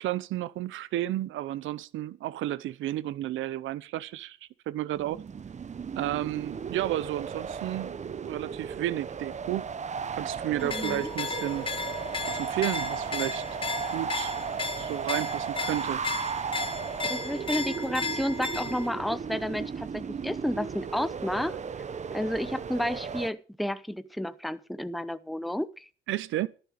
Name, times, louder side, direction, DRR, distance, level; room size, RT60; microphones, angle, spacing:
voice 1, 0.0-4.4 4.7-5.2 6.0-9.7 10.1-11.7 12.3-13.4 13.9-14.3 14.8-16.0 26.1-26.5, right 14 dB, 85° right, 0.7 m, -32 dB
sound 1, 4.9-23.3, right 6 dB, 35° right, 0.9 m, -35 dB
sound 2, 10.6-18.9, left 4 dB, 25° left, 1.6 m, -35 dB
voice 2, 10.6-11.1 17.1-21.6 22.1-25.9, left 1 dB, ahead, 0.8 m, -31 dB
12.0 x 11.0 x 5.1 m
cardioid pair, 90°, 20 cm